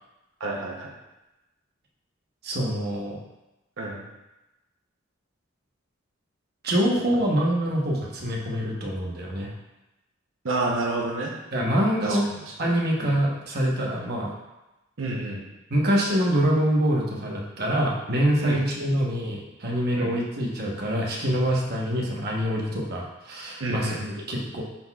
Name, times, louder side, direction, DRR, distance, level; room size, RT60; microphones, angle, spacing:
voice 1, 0.4-0.9 3.8-4.0 10.4-11.3 12.0-12.2 13.0-13.1 15.0-15.4 18.4-18.6 19.9-20.1 23.6-24.0, right 2 dB, 90° right, -2 dB, 0.8 m, -29 dB
voice 2, 2.4-3.2 6.6-9.5 11.5-12.3 12.6-14.3 15.7-24.6, equal, 55° right, -2 dB, 1.1 m, -25 dB
10.0 x 4.0 x 2.3 m, 0.99 s
head